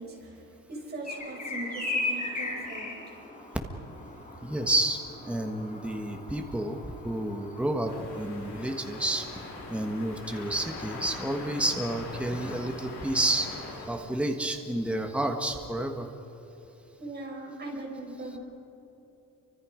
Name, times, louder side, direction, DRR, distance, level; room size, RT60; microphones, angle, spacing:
voice 1, 0.0-3.2 17.0-18.4, right 2 dB, 30° right, -2 dB, 5.7 m, -40 dB
sound 1, 1.0-13.6, left 2 dB, 25° left, 4.6 m, -40 dB
voice 2, 4.4-6.8 7.0-9.2 9.7-16.1, right 1 dB, 5° right, 3 dB, 1.4 m, -30 dB
sound 2, 7.9-13.9, left 3 dB, 55° left, 7.0 m, -42 dB
29.5 x 25.0 x 5.1 m, 2.9 s
cardioid pair, 170°, 33 cm